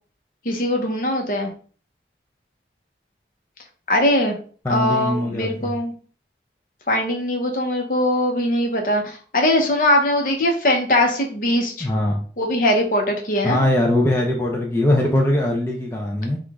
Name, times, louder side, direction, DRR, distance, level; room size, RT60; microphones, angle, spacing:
voice 1, 0.4-1.5 3.9-4.3 4.7-5.9 6.9-11.9 12.4-13.6, left 1 dB, 50° left, 2 dB, 0.9 m, -21 dB
voice 2, 4.6-5.7 11.8-12.2 13.4-16.4, left 1 dB, 15° left, -1 dB, 0.5 m, -21 dB
4.8 x 2.5 x 3.6 m, 0.43 s
head